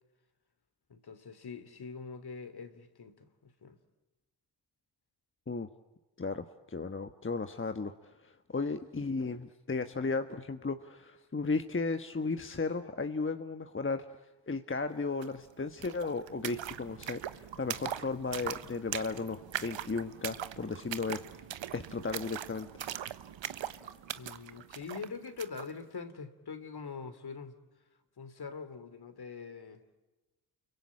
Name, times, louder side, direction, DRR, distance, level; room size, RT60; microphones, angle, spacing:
voice 1, 0.9-3.8 24.2-27.5 28.2-29.8, left 5 dB, 55° left, 3.1 m, -43 dB
voice 2, 6.2-14.1 14.5-21.4 21.7-22.7, left 3 dB, 25° left, 1.4 m, -35 dB
sound 1, 15.2-15.3 15.5-25.7, right 10 dB, 70° right, 1.2 m, -41 dB
29.5 x 23.0 x 8.6 m
supercardioid pair, 50°, 47 cm